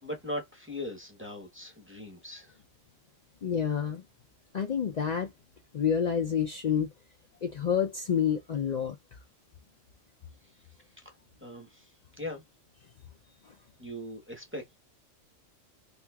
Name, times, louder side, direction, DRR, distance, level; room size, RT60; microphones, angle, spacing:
voice 1, 0.0-2.6 10.4-10.5 11.0-11.1 11.4-12.4 13.8-14.8, left 1 dB, 10° right, 0.7 m, -40 dB
voice 2, 3.4-4.0 4.5-5.3 5.7-6.9 7.4-9.0, left 8 dB, 80° left, 0.3 m, -28 dB
2.9 x 2.4 x 3.4 m
omnidirectional pair, 1.4 m